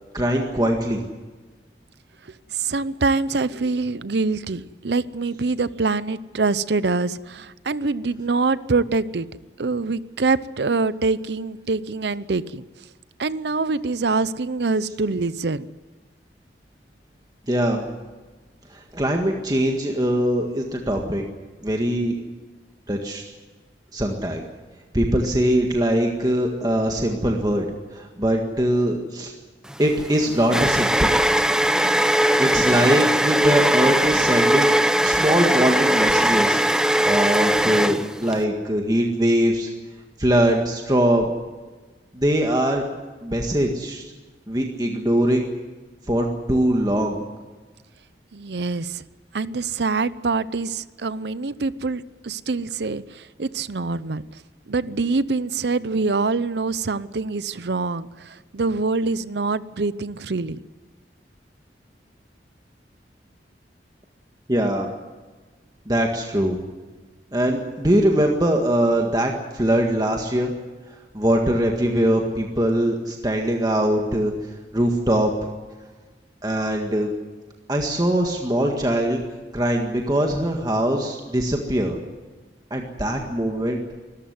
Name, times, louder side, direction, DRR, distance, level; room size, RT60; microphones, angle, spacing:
voice 1, 0.1-1.0 17.5-17.9 18.7-21.2 21.6-22.1 22.9-23.2 23.9-24.4 24.9-27.7 27.9-29.3 29.8-31.2 32.4-34.7 35.0-39.7 40.2-41.3 42.1-42.8 43.2-44.0 44.5-45.5 46.1-47.2 64.5-64.9 65.9-66.6 67.3-70.5 71.1-74.3 74.7-75.3 76.4-77.1 77.7-79.2 79.5-82.0 82.7-83.8, right 1 dB, 20° right, 2 dB, 1.8 m, -22 dB
voice 2, 2.5-9.3 9.6-12.6 13.2-15.7 48.3-49.0 49.3-54.2 54.7-60.6, right 3 dB, 70° right, 16 dB, 0.7 m, -25 dB
sound 1, 29.7-38.4, right 1 dB, 5° right, 0.7 m, -20 dB
24.5 x 14.5 x 9.6 m, 1.3 s
head